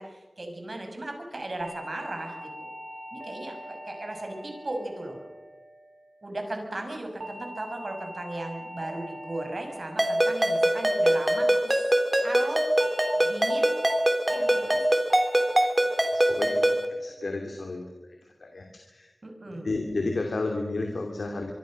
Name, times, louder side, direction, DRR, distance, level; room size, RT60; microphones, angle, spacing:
voice 1, 0.0-2.7 3.1-5.2 6.2-11.9 12.2-12.6 13.2-13.7 14.3-14.8 19.2-19.7, right 1 dB, 55° right, 4 dB, 6.8 m, -37 dB
sound 1, 1.6-6.1 7.2-11.7 12.8-13.1 13.5-13.9 14.3-14.7 15.1-15.5 15.9-16.3 16.7-17.1, equal, 75° right, 7.6 m, -43 dB
Ringtone, 10.0-16.8, right 1 dB, 20° right, 3.6 m, -23 dB
voice 2, 15.8-16.7 17.0-19.1 19.5-21.5, left 2 dB, 80° left, 3 dB, 2.9 m, -33 dB
25.0 x 24.5 x 6.6 m, 1.2 s
wide cardioid pair, 55°, 0 cm